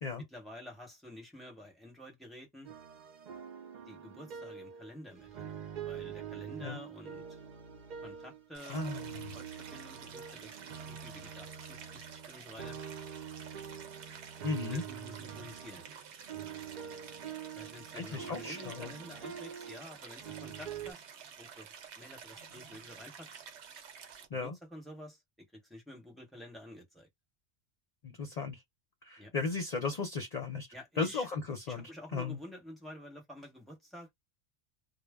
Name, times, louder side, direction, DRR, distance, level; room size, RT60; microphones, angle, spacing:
voice 1, 0.2-2.7 3.9-7.4 8.0-12.8 14.6-15.8 17.5-21.0 21.4-23.4 24.3-27.1 29.2-29.3 30.7-31.3 31.7-34.1, left 1 dB, ahead, 0.8 m, -50 dB
sound 1, 2.6-8.4 8.7-20.9, right 8 dB, 60° right, 0.5 m, -45 dB
Stream, 8.5-24.3, right 7 dB, 80° right, 0.9 m, -50 dB
voice 2, 8.7-9.3 14.4-14.8 17.9-18.9 24.3-24.5 28.0-28.6 29.0-30.7 31.0-32.4, left 4 dB, 45° left, 0.7 m, -36 dB
2.0 x 2.0 x 3.4 m
omnidirectional pair, 1.1 m